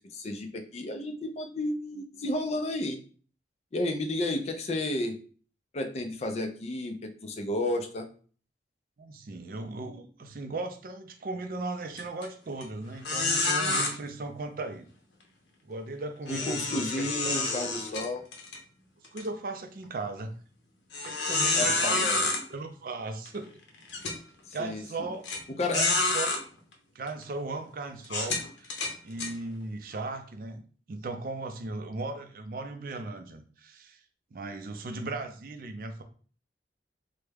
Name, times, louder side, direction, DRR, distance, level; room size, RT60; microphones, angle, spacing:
voice 1, 0.1-3.0 3.7-5.2 5.7-8.1 16.3-18.2 21.5-22.3 24.5-25.1 25.6-25.8, left 1 dB, 35° left, 6 dB, 0.4 m, -32 dB
voice 2, 9.0-14.9 15.6-17.4 19.1-20.3 21.0-22.1 22.5-23.6 24.5-25.3 25.7-26.4 26.9-28.8 29.0-30.6 30.9-34.0 34.3-36.0, right 3 dB, 50° right, 7 dB, 0.4 m, -37 dB
sound 1, 12.0-12.2 12.6-12.7 13.0-13.9 16.3-18.6 19.0-19.2 19.8-19.9 20.9-22.4 23.3-23.4 23.9-24.2 25.2-25.4 25.7-26.4 27.1-27.2 28.0-29.3, left 3 dB, 85° left, 0.7 m, -28 dB
3.3 x 2.1 x 3.3 m, 0.41 s
head